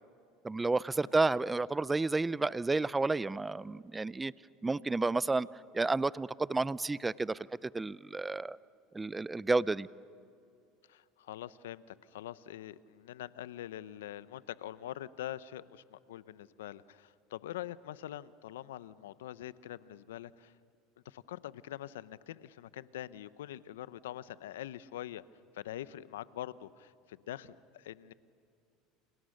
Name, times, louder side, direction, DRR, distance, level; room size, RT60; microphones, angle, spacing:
voice 1, 0.4-4.3 4.6-5.5 5.7-8.6 8.9-9.9, right 3 dB, 15° right, 20 dB, 0.5 m, -31 dB
voice 2, 10.9-20.5 21.0-25.2 25.5-28.1, left 12 dB, 90° left, 17 dB, 0.8 m, -44 dB
30.0 x 29.0 x 6.6 m, 2.5 s
supercardioid pair, 95°, 0 cm